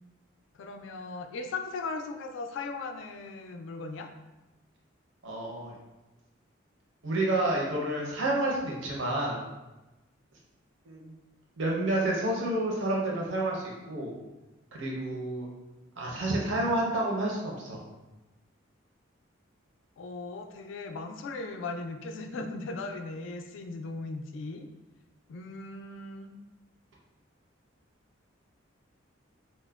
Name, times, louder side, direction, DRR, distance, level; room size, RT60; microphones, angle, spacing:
voice 1, 0.6-4.1 20.0-24.7 25.3-26.3, left 3 dB, 65° left, 5 dB, 0.3 m, -38 dB
voice 2, 5.2-5.7 7.0-9.4 10.8-11.1 11.6-14.1 14.7-15.5 16.0-17.8, right 1 dB, 65° right, -2 dB, 0.6 m, -29 dB
4.2 x 2.1 x 2.2 m, 1.1 s
head